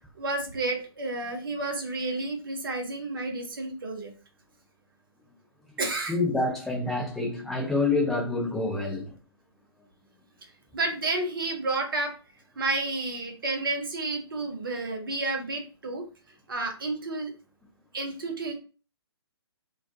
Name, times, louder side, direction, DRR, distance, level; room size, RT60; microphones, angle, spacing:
voice 1, 0.2-4.1 5.8-6.2 10.7-12.1 12.6-16.0 16.5-17.3 17.9-18.5, right 2 dB, 55° right, 0.7 m, -31 dB
voice 2, 6.1-9.1, left 3 dB, ahead, 0.5 m, -27 dB
2.3 x 2.1 x 2.6 m
figure-of-eight pair, 130°, 14 cm